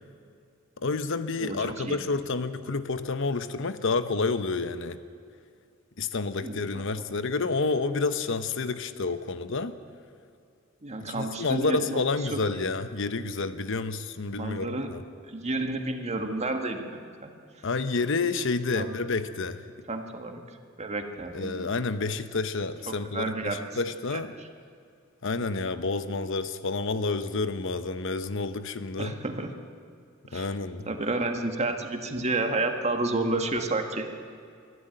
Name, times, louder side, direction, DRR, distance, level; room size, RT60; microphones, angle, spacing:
voice 1, 0.8-5.0 6.0-9.7 11.0-15.0 17.6-19.6 21.3-24.4 25.2-29.2 30.3-30.9, left 3 dB, 65° left, 11 dB, 0.9 m, -29 dB
voice 2, 1.5-2.0 6.4-6.6 10.8-12.7 14.4-14.9 15.3-17.3 18.7-18.9 19.9-20.4 20.8-21.7 22.9-23.6 29.0-29.5 30.3-30.5 30.9-34.0, right 2 dB, 35° right, 5 dB, 1.7 m, -30 dB
24.0 x 12.5 x 9.1 m, 2.4 s
head